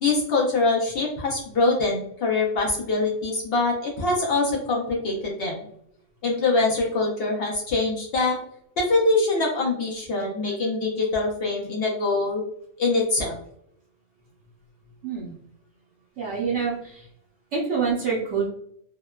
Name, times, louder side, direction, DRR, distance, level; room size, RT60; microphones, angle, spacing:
voice 1, 0.0-5.6 6.2-8.4 8.8-12.4 12.8-13.3, left 3 dB, 60° left, -2 dB, 0.7 m, -24 dB
voice 2, 15.0-15.3 16.2-17.0 17.5-18.5, right 5 dB, 65° right, -5 dB, 1.0 m, -26 dB
2.8 x 2.1 x 2.2 m, 0.70 s
omnidirectional pair, 1.4 m